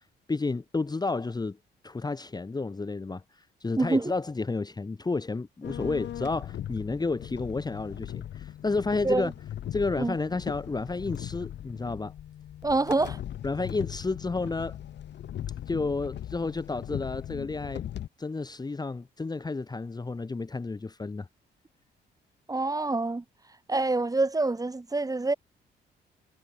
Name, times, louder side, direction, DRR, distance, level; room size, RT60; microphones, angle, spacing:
voice 1, 0.3-1.6 1.8-3.2 3.6-9.3 9.7-12.1 13.4-14.8 15.7-17.8 18.2-21.3, left 3 dB, 20° left, 1.5 m, -31 dB
voice 2, 3.8-4.1 9.0-9.3 10.0-10.1 12.6-13.2 22.5-23.2 23.7-25.3, right 3 dB, 20° right, 3.1 m, -26 dB
sound 1, 5.6-18.1, left 11 dB, 75° left, 6.4 m, -39 dB
cardioid pair, 90°, 19 cm